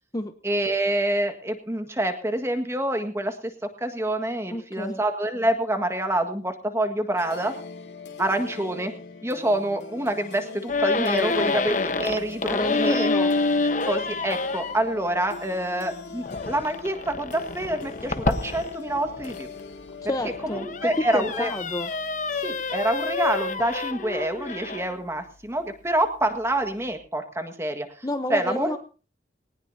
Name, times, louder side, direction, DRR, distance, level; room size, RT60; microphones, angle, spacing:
voice 1, 0.4-7.5 8.2-8.9 9.2-13.1 13.9-19.5 20.4-21.5 22.4-28.0 28.3-28.7, right 1 dB, 15° right, 6 dB, 1.6 m, -27 dB
voice 2, 4.5-5.0 11.2-11.5 12.5-13.3 20.0-21.9 28.0-28.8, left 1 dB, 20° left, 8 dB, 0.8 m, -30 dB
sound 1, 7.1-23.7, left 4 dB, 70° left, 2.3 m, -42 dB
sound 2, 10.7-14.8 16.2-19.4 20.0-25.0, left 3 dB, 45° left, 1.1 m, -28 dB
20.0 x 19.0 x 2.8 m, 0.37 s
head